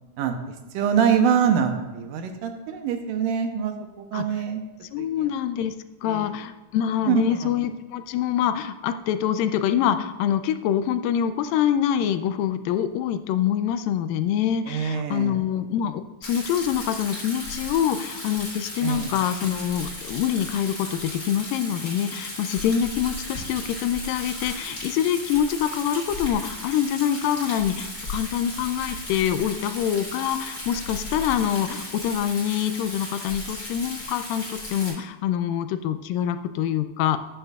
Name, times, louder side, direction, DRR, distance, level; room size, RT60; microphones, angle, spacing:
voice 1, 0.7-4.6 6.1-6.3 7.1-7.2 14.7-15.3 18.8-19.1, right 8 dB, 80° right, 5 dB, 2.4 m, -24 dB
voice 2, 4.9-5.7 6.0-37.2, left 9 dB, 90° left, 10 dB, 2.3 m, -25 dB
Rain, 16.2-34.9, left 1 dB, 25° left, 2.7 m, -36 dB
12.5 x 9.9 x 2.4 m, 1.1 s
omnidirectional pair, 3.9 m